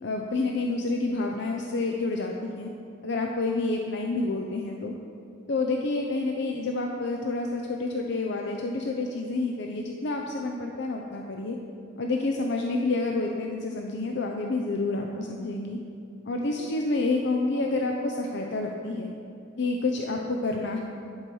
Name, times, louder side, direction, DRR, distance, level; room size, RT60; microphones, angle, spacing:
voice 1, 0.0-2.7 3.0-4.9 5.5-11.6 12.0-15.8 16.3-19.1 19.6-20.8, left 3 dB, 65° left, 2 dB, 0.6 m, -28 dB
10.5 x 4.8 x 6.2 m, 2.6 s
head